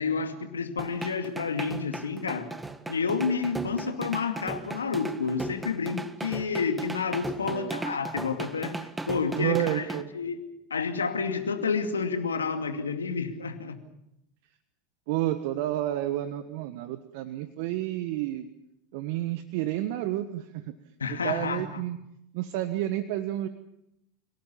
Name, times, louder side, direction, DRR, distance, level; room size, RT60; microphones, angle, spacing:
voice 1, 0.0-2.5 2.9-9.9 10.1-10.4 10.7-13.8 21.0-21.6, left 5 dB, 90° left, 7 dB, 2.4 m, -30 dB
sound 1, 0.8-10.0, right 2 dB, 10° right, 1.8 m, -37 dB
voice 2, 7.5-7.8 9.4-10.1 15.1-18.5 18.9-20.7 21.1-22.0 22.3-23.5, right 14 dB, 60° right, 11 dB, 1.3 m, -30 dB
30.0 x 18.5 x 7.1 m, 0.81 s
hypercardioid pair, 85°, 0 cm